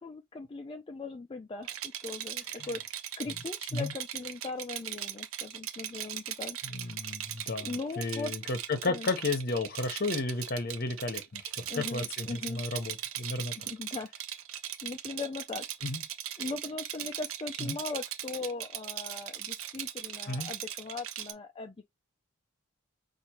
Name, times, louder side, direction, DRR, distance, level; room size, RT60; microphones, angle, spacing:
voice 1, 0.0-6.6 7.6-8.3 8.9-9.1 11.7-12.6 13.6-14.1 14.8-15.6 16.4-21.8, left 3 dB, 25° left, 0.4 m, -39 dB
Rattle, 1.6-21.3, right 11 dB, 80° right, 0.6 m, -39 dB
voice 2, 6.6-13.5 15.8-16.0 17.6-17.8 20.3-20.5, left 3 dB, 45° left, 0.9 m, -33 dB
5.0 x 2.6 x 2.9 m
head